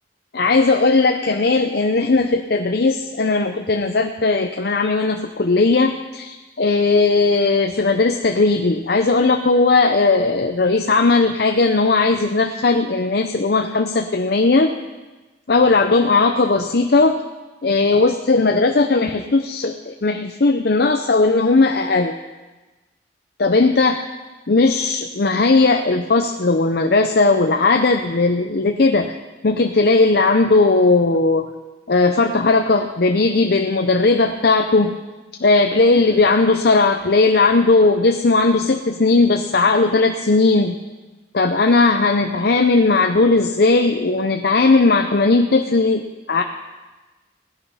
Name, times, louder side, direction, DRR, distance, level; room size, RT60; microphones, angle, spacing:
voice 1, 0.3-14.7 15.5-17.2 17.6-22.1 23.4-24.1 24.5-29.2 29.4-31.5 31.9-34.9 35.4-40.8 41.3-46.4, left 3 dB, 60° left, 5 dB, 0.7 m, -17 dB
17.0 x 10.0 x 5.6 m, 1.2 s
head